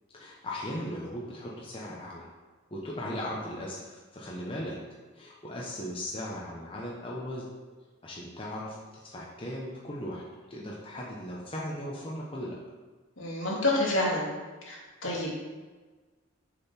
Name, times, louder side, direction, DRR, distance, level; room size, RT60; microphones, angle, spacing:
voice 1, 0.1-2.3 2.7-4.8 5.1-7.4 8.0-8.8 9.0-12.5, left 1 dB, 25° left, -4 dB, 1.0 m, -37 dB
voice 2, 13.2-14.2 14.7-14.8 15.0-15.4, left 2 dB, 75° left, -5 dB, 2.8 m, -27 dB
6.8 x 5.1 x 5.9 m, 1.3 s
head